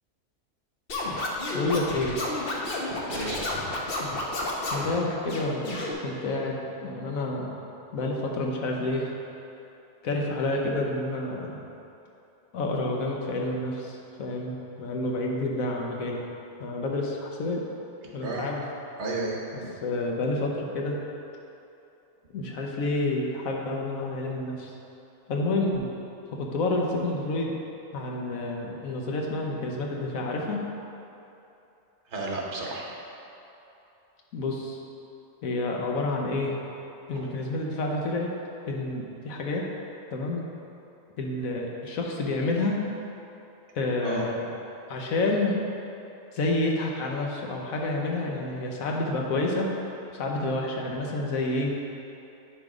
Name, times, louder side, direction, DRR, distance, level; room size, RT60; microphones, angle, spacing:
Scratching (performance technique), 0.9-4.9 5.3-5.9, left 2 dB, 50° left, 1.0 m, -31 dB
voice 1, 1.5-2.2 4.7-7.5 7.9-9.1 10.0-11.6 12.5-16.2 16.6-17.6 18.1-18.6 19.8-21.0 22.3-24.7 25.3-25.9 26.4-27.6 27.9-30.6 34.3-34.8 35.4-36.6 37.1-38.3 38.7-39.6 40.1-40.4 41.2-42.8 43.7-44.5 44.9-45.6 46.3-49.7 50.1-51.7, left 2 dB, 85° left, -1 dB, 1.3 m, -29 dB
voice 2, 3.1-3.5 18.2-18.5 19.0-19.7 32.1-32.9 37.1-37.3 44.0-44.2, right 2 dB, 60° right, -2 dB, 1.3 m, -32 dB
10.0 x 3.4 x 4.9 m, 2.9 s
omnidirectional pair, 1.4 m